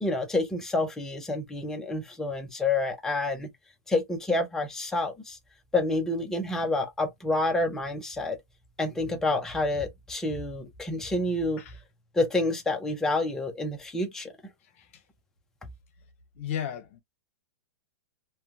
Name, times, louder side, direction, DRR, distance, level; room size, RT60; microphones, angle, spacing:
voice 1, 0.0-3.5 3.9-5.4 5.7-8.4 8.8-11.6 12.1-14.3, left 2 dB, 5° left, 0.5 m, -28 dB
voice 2, 16.4-17.0, left 9 dB, 55° left, 0.9 m, -32 dB
2.9 x 2.2 x 2.4 m
hypercardioid pair, 150°, 9 cm